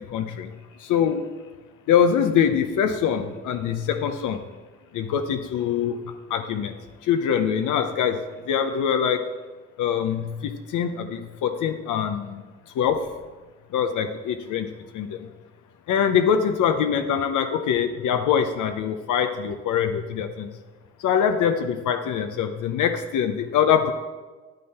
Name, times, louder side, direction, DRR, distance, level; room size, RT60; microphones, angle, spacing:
voice 1, 0.1-0.5 0.8-1.3 1.9-4.4 4.9-6.0 6.3-6.8 7.0-8.2 8.5-9.3 9.8-12.4 12.8-13.1 13.7-15.2 15.9-20.5 21.0-23.9, left 8 dB, 80° left, 7 dB, 0.8 m, -23 dB
9.6 x 9.1 x 4.4 m, 1.3 s
cardioid pair, 90°, 30 cm